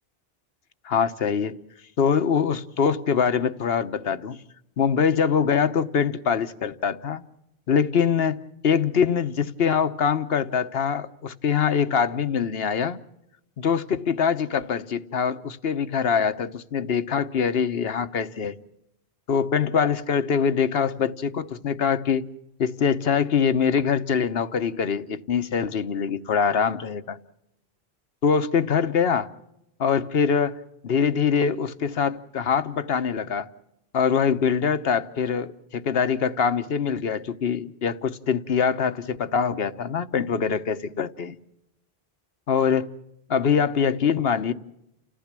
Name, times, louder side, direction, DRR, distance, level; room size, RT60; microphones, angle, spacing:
voice 1, 0.8-1.6 2.0-4.4 4.8-7.2 7.7-13.0 13.6-18.6 19.3-22.2 22.6-27.2 28.2-29.3 29.8-33.5 33.9-41.4 42.5-42.9 43.3-44.5, left 6 dB, 70° left, 1.2 m, -23 dB
30.0 x 15.5 x 7.5 m
omnidirectional pair, 1.1 m